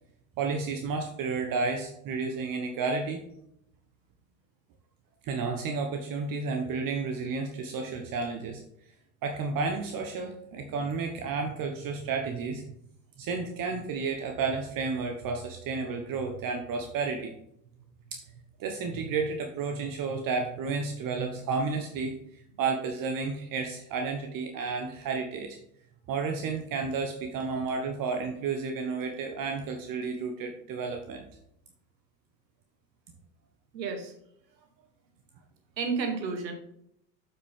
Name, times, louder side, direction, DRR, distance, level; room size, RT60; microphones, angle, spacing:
voice 1, 0.4-3.2 5.2-8.6 9.2-12.6 13.2-17.3 18.1-18.2 18.6-25.6 26.1-31.2, right 4 dB, 40° right, 3 dB, 1.2 m, -32 dB
voice 2, 33.7-34.1 35.8-36.5, right 5 dB, 85° right, 5 dB, 1.7 m, -31 dB
8.0 x 5.8 x 3.7 m, 0.73 s
hypercardioid pair, 85°, 49 cm